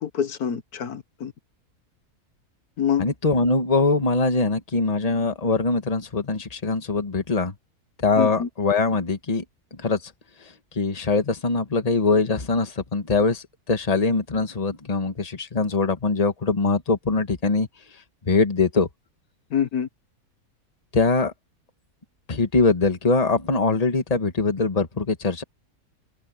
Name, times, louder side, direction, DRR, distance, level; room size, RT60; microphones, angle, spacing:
voice 1, 0.0-1.3 2.8-3.1 8.2-8.5 19.5-19.9, left 8 dB, 85° left, 1.7 m, -26 dB
voice 2, 3.0-7.5 8.0-9.4 9.8-10.1 10.7-17.7 18.2-18.9 20.9-21.3 22.3-25.4, left 3 dB, 25° left, 1.5 m, -22 dB
open air
omnidirectional pair, 1.6 m